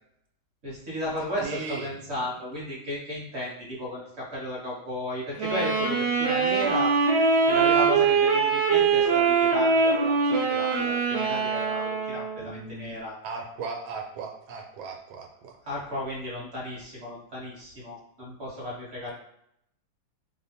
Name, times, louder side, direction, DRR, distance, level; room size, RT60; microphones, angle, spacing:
voice 1, 0.6-6.9 7.5-13.1 15.6-19.1, left 1 dB, 40° right, -5 dB, 1.1 m, -34 dB
voice 2, 1.4-2.3 12.4-12.9 13.2-15.6, right 4 dB, 90° right, 2 dB, 1.4 m, -37 dB
Wind instrument woodwind instrument, 5.4-12.6, right 5 dB, 65° right, 1.1 m, -23 dB
3.2 x 2.1 x 4.1 m, 0.75 s
omnidirectional pair, 2.1 m